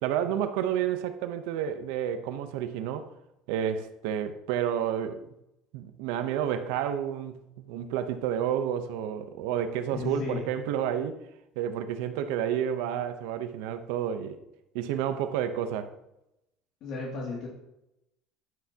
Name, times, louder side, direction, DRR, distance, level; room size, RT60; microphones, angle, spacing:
voice 1, 0.0-3.1 3.5-5.2 5.7-11.2 11.6-14.4 14.7-15.9, right 9 dB, 85° right, 0.8 m, -30 dB
voice 2, 9.9-10.5 16.8-17.5, left 3 dB, 60° left, 2.4 m, -34 dB
10.5 x 9.4 x 2.9 m
cardioid pair, 125°, 0 cm